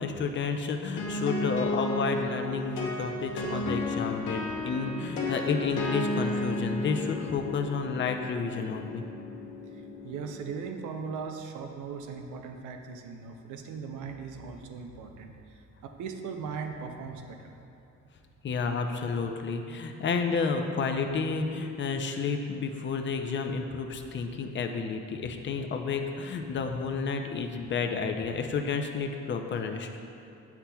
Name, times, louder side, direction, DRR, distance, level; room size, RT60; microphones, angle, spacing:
voice 1, 0.0-9.1 18.4-29.9, left 5 dB, 40° left, 5 dB, 0.5 m, -31 dB
sound 1, 1.0-10.6, left 2 dB, 80° left, 0.9 m, -33 dB
voice 2, 9.7-17.6, right 5 dB, 80° right, 4 dB, 0.6 m, -39 dB
8.2 x 5.8 x 2.3 m, 2.8 s
cardioid pair, 90°, 30 cm